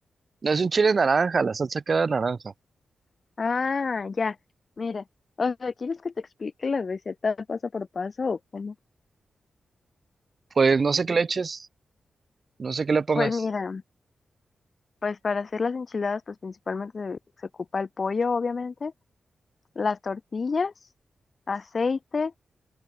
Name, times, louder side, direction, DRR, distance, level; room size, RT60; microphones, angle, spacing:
voice 1, 0.4-2.4 10.6-11.7 12.6-13.3, right 4 dB, 45° right, 2.2 m, -23 dB
voice 2, 3.4-4.4 4.8-5.0 5.4-8.7 13.1-13.8 15.0-18.9 19.7-20.7 21.5-22.3, left 4 dB, 45° left, 3.1 m, -29 dB
open air
wide cardioid pair, 100°, 0 cm